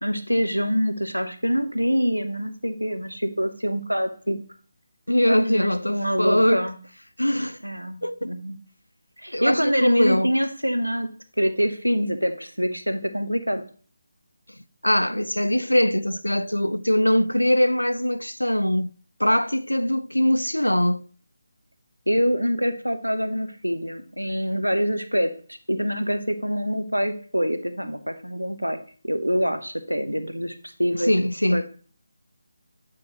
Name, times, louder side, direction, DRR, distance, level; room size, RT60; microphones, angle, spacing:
voice 1, 0.0-4.4 5.3-6.8 7.6-8.6 9.2-11.1 11.4-13.6 22.1-25.3 25.7-28.8 29.0-31.1 31.5-31.6, equal, 90° right, 0.9 m, -25 dB
voice 2, 5.1-6.7 7.2-7.6 8.0-8.2 9.3-10.3 14.8-18.9 19.2-21.0 31.1-31.6, equal, 85° left, 0.4 m, -22 dB
8.4 x 6.1 x 2.9 m
figure-of-eight pair, 155°, 0 cm